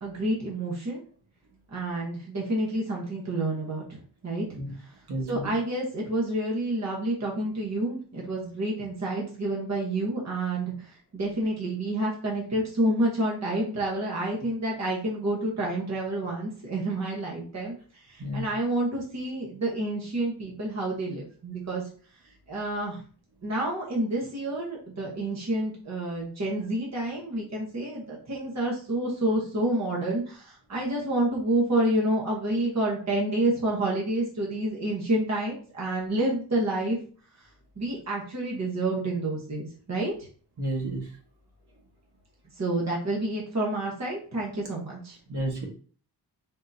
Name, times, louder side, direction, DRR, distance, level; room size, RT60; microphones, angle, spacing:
voice 1, 0.0-1.0 1.7-4.5 5.3-21.8 22.5-23.0 23.4-37.0 37.8-40.1 42.6-45.2, right 1 dB, 40° right, -2 dB, 1.1 m, -29 dB
voice 2, 5.1-5.5 18.2-18.4 40.6-41.1 45.3-45.7, right 1 dB, 65° right, -1 dB, 1.5 m, -31 dB
3.8 x 3.6 x 2.7 m, 0.43 s
wide cardioid pair, 145°, 41 cm